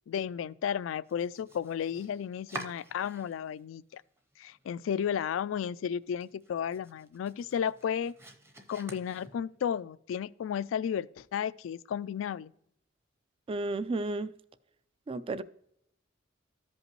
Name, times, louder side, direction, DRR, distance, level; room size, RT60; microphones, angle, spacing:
voice 1, 0.1-4.0 4.4-8.1 8.7-12.5, left 8 dB, 85° left, 0.3 m, -33 dB
Domestic sounds home sounds, 1.0-3.6 3.9-4.7 5.0-5.1 5.5-5.6 6.0-9.7, right 3 dB, 15° right, 0.7 m, -48 dB
voice 2, 13.5-14.3 15.1-15.4, right 2 dB, 30° right, 0.3 m, -32 dB
13.5 x 5.3 x 3.0 m
head